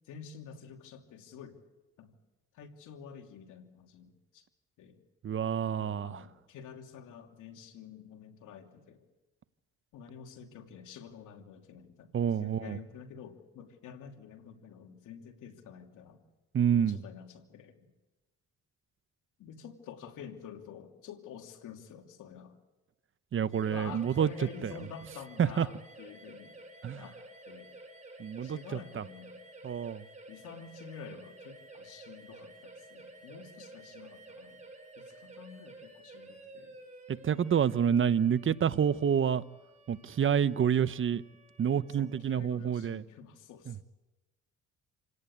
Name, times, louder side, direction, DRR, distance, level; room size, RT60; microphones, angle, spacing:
voice 1, 0.0-1.6 2.0-2.1 2.5-4.5 4.8-5.0 5.8-9.0 9.9-16.2 16.8-17.9 19.4-22.6 23.6-27.2 27.5-27.7 28.4-29.4 30.3-34.6 35.0-36.7 42.0-43.8, left 7 dB, 85° left, 2.9 m, -49 dB
voice 2, 5.2-6.2 12.1-12.8 16.5-17.0 23.3-24.3 24.6-24.7 25.4-25.7 26.8-27.0 28.2-29.0 29.6-30.0 37.1-39.4 39.9-41.2 41.6-43.0 43.7-43.8, right 8 dB, 45° right, 0.8 m, -28 dB
sound 1, 23.5-42.2, right 2 dB, 25° right, 7.3 m, -52 dB
28.0 x 17.5 x 8.7 m
cardioid pair, 90°, 30 cm